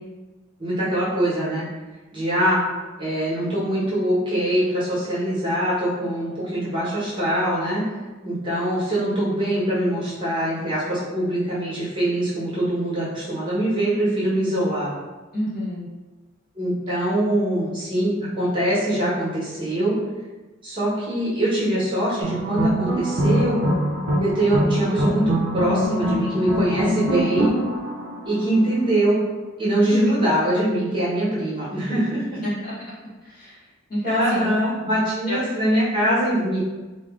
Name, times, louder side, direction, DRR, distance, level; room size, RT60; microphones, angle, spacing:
voice 1, 0.6-1.6 2.1-2.6 3.0-7.8 8.2-14.9 16.5-20.0 20.6-23.6 24.2-27.5 28.2-29.2 29.6-32.4 34.0-36.6, right 1 dB, 25° right, -9 dB, 1.0 m, -23 dB
voice 2, 15.3-15.9 29.9-30.0 32.4-32.7 33.2-33.6 33.9-34.5 35.3-35.4, left 1 dB, 45° left, -9 dB, 1.0 m, -28 dB
sound 1, 22.2-28.8, right 1 dB, 65° right, 0.4 m, -24 dB
2.4 x 2.0 x 3.5 m, 1.2 s
head